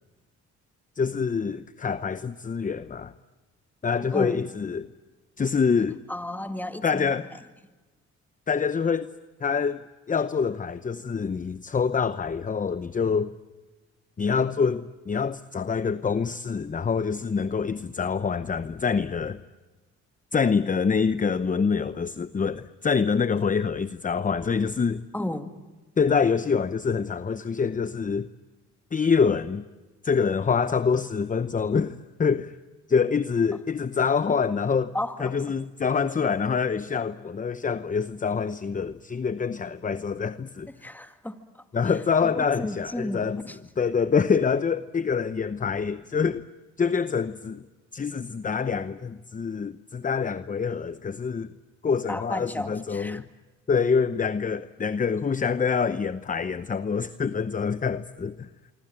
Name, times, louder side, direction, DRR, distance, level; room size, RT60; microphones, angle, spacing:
voice 1, 1.0-3.1 3.8-4.9 5.4-6.0 6.8-7.3 8.5-9.1 9.4-13.3 14.2-19.4 20.3-25.0 26.0-28.3 28.9-29.6 30.0-32.5 32.9-34.9 35.2-40.7 41.7-43.4 43.8-46.4 46.8-47.6 47.9-51.5 51.8-53.2 53.7-58.5, left 5 dB, 25° left, 0.8 m, -26 dB
voice 2, 6.1-7.2 25.1-25.5 33.5-33.6 34.9-35.3 40.7-41.6 42.2-43.6 52.1-53.3, left 1 dB, 5° left, 2.2 m, -33 dB
25.5 x 25.0 x 9.0 m
cardioid pair, 90°, 30 cm